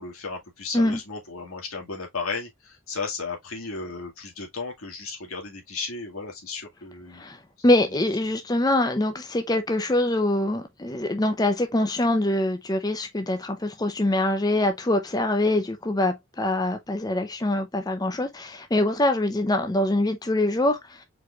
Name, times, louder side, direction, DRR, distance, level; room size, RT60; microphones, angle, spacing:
voice 1, 0.0-7.3, left 4 dB, 85° left, 2.0 m, -34 dB
voice 2, 7.6-20.8, left 1 dB, 20° left, 0.6 m, -24 dB
4.7 x 4.1 x 2.4 m
head